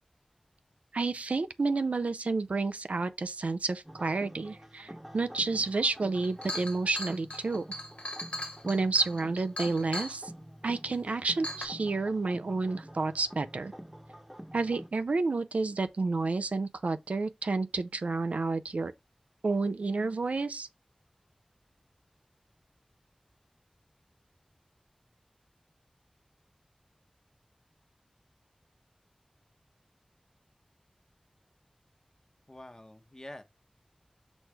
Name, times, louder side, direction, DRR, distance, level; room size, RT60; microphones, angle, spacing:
voice 1, 0.9-7.6 8.6-10.3 10.6-13.7 14.5-18.9 19.4-20.7, right 3 dB, 85° right, 0.5 m, -30 dB
sound 1, 3.8-14.9, equal, 10° right, 0.9 m, -48 dB
Chink clink, 5.8-5.9 6.2-10.2 10.9-11.0 11.4-11.7, left 1 dB, 70° left, 1.3 m, -38 dB
voice 2, 32.5-33.4, left 1 dB, 30° left, 1.0 m, -46 dB
6.2 x 3.3 x 4.7 m
wide cardioid pair, 50°, 2 cm